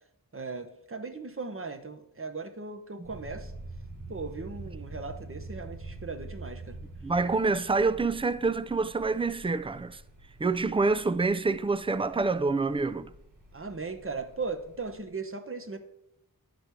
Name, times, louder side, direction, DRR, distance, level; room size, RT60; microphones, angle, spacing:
voice 1, 0.3-3.5 4.1-6.8 13.5-15.8, right 4 dB, 35° right, 0.9 m, -38 dB
sound 1, 3.0-15.0, right 2 dB, 55° right, 1.7 m, -46 dB
voice 2, 7.0-10.0 10.4-13.1, right 3 dB, 15° right, 0.3 m, -27 dB
10.5 x 5.2 x 4.5 m
wide cardioid pair, 50°, 39 cm